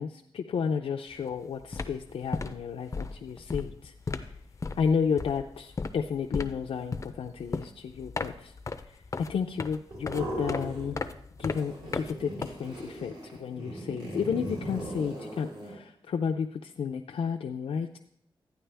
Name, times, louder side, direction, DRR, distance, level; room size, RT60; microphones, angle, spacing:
voice 1, 0.0-3.9 4.8-8.5 8.9-11.0 11.4-13.1 13.4-18.0, left 6 dB, 90° left, 2 dB, 0.5 m, -32 dB
sound 1, 1.1-1.3 1.6-13.0, left 4 dB, 35° left, 0.5 m, -36 dB
sound 2, 9.9-11.1 11.4-15.7, right 1 dB, 65° right, 4.3 m, -38 dB
12.5 x 9.4 x 3.4 m, 0.70 s
wide cardioid pair, 130°, 10 cm